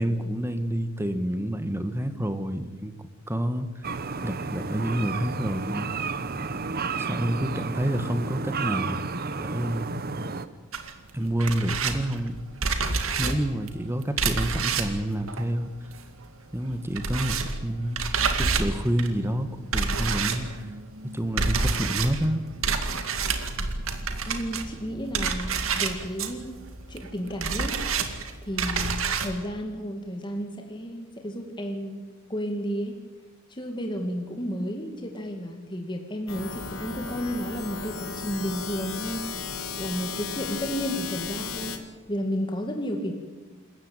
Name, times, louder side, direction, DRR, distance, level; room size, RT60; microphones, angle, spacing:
voice 1, 0.0-2.9 3.3-3.7 4.2-6.0 7.0-9.0 9.4-10.0 11.1-12.4 13.2-15.7 16.5-18.0 18.4-20.7 21.1-22.4, right 1 dB, 10° right, 10 dB, 1.5 m, -28 dB
sound 1, 3.8-10.5, right 4 dB, 45° right, 1.0 m, -32 dB
sound 2, 10.7-16.3 16.5-29.4, right 4 dB, 75° right, 2.3 m, -29 dB
voice 2, 24.2-27.8 28.4-32.0 32.3-33.0 33.5-39.2 39.8-43.1, equal, 25° left, 4 dB, 2.2 m, -32 dB
sound 3, 36.3-41.8, left 5 dB, 85° left, 2.5 m, -35 dB
27.5 x 15.0 x 9.1 m, 1.3 s
head